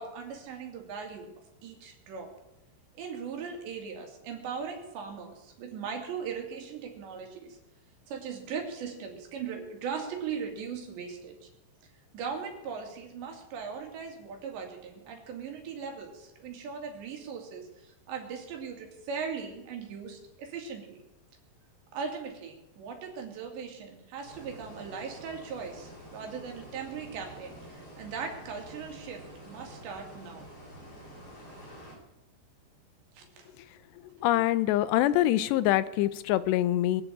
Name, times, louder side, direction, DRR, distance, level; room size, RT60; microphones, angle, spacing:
voice 1, 0.0-1.3 1.6-2.3 3.0-7.6 8.1-11.5 12.1-21.0 21.9-30.5 33.1-33.5, right 6 dB, 80° right, 2 dB, 4.8 m, -39 dB
sound 1, 24.2-31.9, equal, 30° left, 5.2 m, -48 dB
voice 2, 34.2-37.0, left 14 dB, 80° left, 15 dB, 2.7 m, -25 dB
22.0 x 7.3 x 8.7 m, 0.95 s
omnidirectional pair, 5.0 m